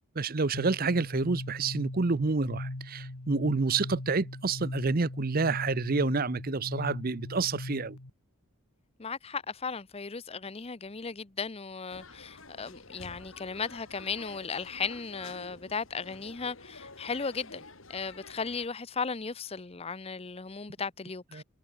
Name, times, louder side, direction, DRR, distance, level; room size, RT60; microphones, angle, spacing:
voice 1, 0.2-8.0 21.3-21.4, right 3 dB, 40° right, 0.7 m, -28 dB
sound 1, 0.5-8.1, left 1 dB, 90° left, 2.0 m, -40 dB
voice 2, 9.0-17.6 17.9-21.4, left 5 dB, 25° left, 0.7 m, -36 dB
sound 2, 11.9-18.7, left 3 dB, 60° left, 5.3 m, -49 dB
head